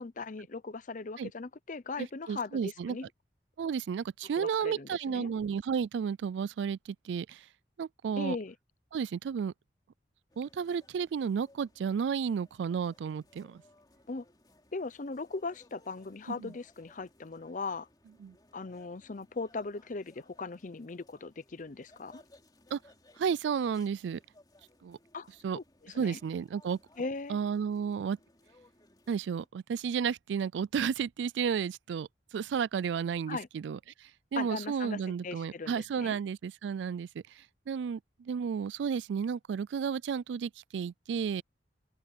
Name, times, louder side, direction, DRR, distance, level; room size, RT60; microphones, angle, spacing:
voice 1, 0.0-3.1 4.4-5.3 8.2-8.5 14.1-14.2 14.7-17.9 18.5-22.2 25.1-26.2 27.0-27.4 33.3-33.5 34.4-36.2, left 3 dB, 45° left, 0.7 m, -39 dB
voice 2, 2.0-3.0 3.6-7.5 7.8-8.4 8.9-9.5 10.4-13.6 16.3-16.5 18.2-18.4 22.7-22.8 23.2-24.2 24.8-25.0 25.4-25.6 25.9-26.8 27.3-28.2 29.1-41.4, right 6 dB, 90° right, 0.3 m, -32 dB
sound 1, 10.3-29.5, left 1 dB, 25° left, 3.3 m, -63 dB
open air
head